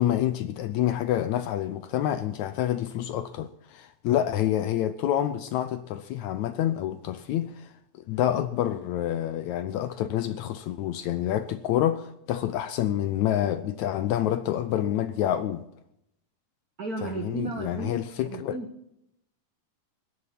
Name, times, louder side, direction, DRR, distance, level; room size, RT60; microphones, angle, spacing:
voice 1, 0.0-7.7 8.1-15.6 17.0-18.6, left 11 dB, 75° left, 1.8 m, -27 dB
voice 2, 16.8-17.9 18.2-18.7, right 3 dB, 40° right, 1.3 m, -34 dB
19.5 x 10.5 x 5.9 m
omnidirectional pair, 3.8 m